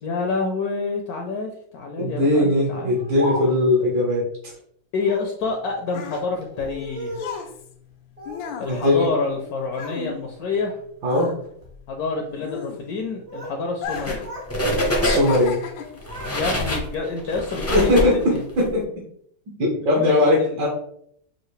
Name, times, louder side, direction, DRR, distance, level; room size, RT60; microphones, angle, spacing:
voice 1, 0.0-3.0 4.9-7.4 8.6-10.8 11.9-14.3 16.3-18.4 19.9-20.7, left 4 dB, 70° left, 2 dB, 0.9 m, -28 dB
voice 2, 2.0-4.5 8.7-9.1 11.0-11.3 15.0-15.6 17.7-18.8 19.6-20.7, left 1 dB, 70° right, -3 dB, 1.6 m, -20 dB
Speech, 2.7-3.8 5.0-5.4 6.4-7.5 8.2-9.0 9.3-10.0 10.4-10.8 11.5-11.8 12.9-13.6 13.9-14.5 14.8-15.4 15.7-17.0, equal, 50° right, 0.4 m, -37 dB
sound 1, 5.4-10.8 11.0-13.2 13.7-14.3 14.6-16.1 16.8-17.0, left 7 dB, 90° left, 1.3 m, -35 dB
sound 2, 13.8-14.2 14.5-15.5 16.0-18.6, left 1 dB, 25° left, 0.3 m, -25 dB
5.6 x 2.5 x 3.1 m, 0.70 s
omnidirectional pair, 2.0 m